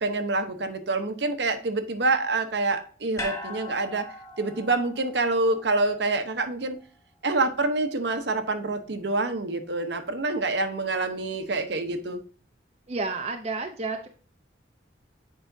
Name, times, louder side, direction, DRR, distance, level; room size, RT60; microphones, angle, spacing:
voice 1, 0.0-6.8 7.2-12.2, right 3 dB, 65° right, 8 dB, 0.8 m, -27 dB
sound 1, 3.2-7.5 7.8-7.9, left 1 dB, 15° left, 0.8 m, -41 dB
voice 2, 12.9-14.1, right 3 dB, 35° right, 4 dB, 0.6 m, -30 dB
8.0 x 5.0 x 2.6 m, 0.39 s
head